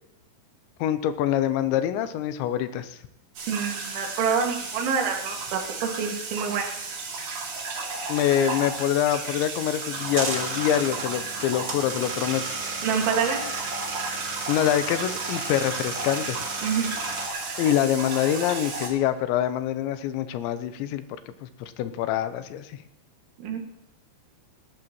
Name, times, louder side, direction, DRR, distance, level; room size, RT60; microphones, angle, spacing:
voice 1, 0.8-3.0 8.1-12.6 14.5-16.4 17.6-21.0 21.4-22.8, left 11 dB, 90° left, 11 dB, 3.1 m, -25 dB
sound 1, 3.4-18.9, right 3 dB, 65° right, 4.6 m, -34 dB
voice 2, 3.5-5.6 6.0-6.7 12.8-13.4 16.6-16.9 23.4-23.6, right 6 dB, 90° right, 2 dB, 4.4 m, -26 dB
sound 2, 9.9-17.3, right 3 dB, 45° right, 1.5 m, -34 dB
18.5 x 12.0 x 3.1 m, 0.84 s
omnidirectional pair, 5.3 m